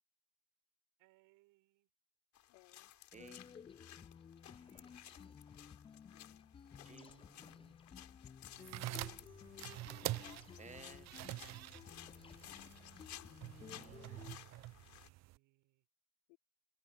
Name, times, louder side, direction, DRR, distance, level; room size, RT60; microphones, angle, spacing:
voice 1, 1.0-1.9 4.5-5.4 8.6-9.4 11.8-12.5 14.7-15.9, right 22 dB, 70° right, 5.9 m, -73 dB
sound 1, 2.3-15.1, left 12 dB, 55° left, 4.7 m, -57 dB
voice 2, 2.5-2.9 6.1-6.5 10.2-10.6 13.1-13.5 16.3-16.4, left 30 dB, 80° left, 4.6 m, -66 dB
sound 2, 3.1-14.4, left 7 dB, 15° left, 0.3 m, -56 dB
voice 3, 3.1-3.5 6.8-7.8 10.6-11.1 13.7-14.5, right 5 dB, 20° right, 1.4 m, -58 dB
sound 3, 8.5-15.4, right 17 dB, 50° right, 0.6 m, -46 dB
supercardioid pair, 95°, 34 cm